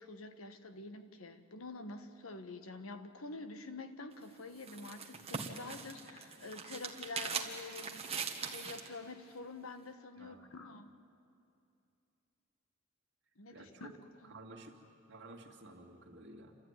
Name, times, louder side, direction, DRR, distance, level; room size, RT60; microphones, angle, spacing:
voice 1, 0.0-10.9 13.4-13.9 14.2-14.3, left 3 dB, 85° left, 9 dB, 1.3 m, -47 dB
sound 1, 4.1-8.9, right 5 dB, 30° right, 1.5 m, -41 dB
voice 2, 10.2-10.5 13.5-13.9 14.2-14.7 15.1-16.6, right 2 dB, 60° right, 1 dB, 2.4 m, -52 dB
28.0 x 13.5 x 9.6 m, 2.6 s
head